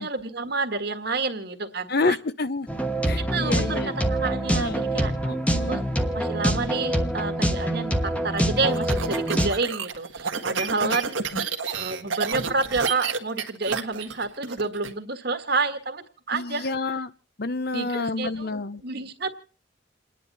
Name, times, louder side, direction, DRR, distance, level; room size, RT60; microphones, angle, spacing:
voice 1, 0.0-2.2 3.2-5.1 5.7-5.9 6.1-11.2 11.7-16.7 17.7-18.5 18.8-19.3, right 3 dB, 55° right, 7 dB, 1.7 m, -29 dB
voice 2, 1.9-2.7 3.1-3.9 4.5-4.9 5.2-5.8 10.8-11.0 11.3-11.5 16.3-17.1 17.4-18.8, left 3 dB, 50° left, 14 dB, 0.8 m, -29 dB
sound 1, 2.7-9.5, right 1 dB, 5° left, 1.3 m, -25 dB
sound 2, 8.4-14.9, right 5 dB, 80° right, 1.6 m, -30 dB
29.0 x 10.5 x 4.2 m, 0.41 s
head